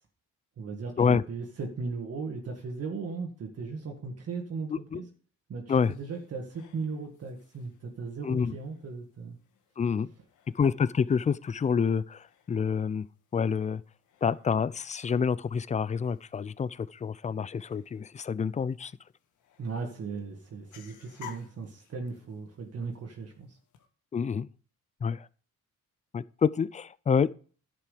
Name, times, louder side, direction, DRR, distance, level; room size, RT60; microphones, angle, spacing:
voice 1, 0.6-5.1 5.5-9.4 19.6-23.6, right 4 dB, 55° right, 1.9 m, -37 dB
sound 1, 5.7-23.9, left 9 dB, 85° left, 1.5 m, -57 dB
voice 2, 8.2-8.5 9.8-10.1 10.5-13.1 13.3-13.8 14.2-18.9 24.1-24.5 25.0-25.3 26.1-27.3, left 6 dB, 25° left, 0.4 m, -27 dB
10.5 x 7.6 x 5.1 m
cardioid pair, 90°, 30 cm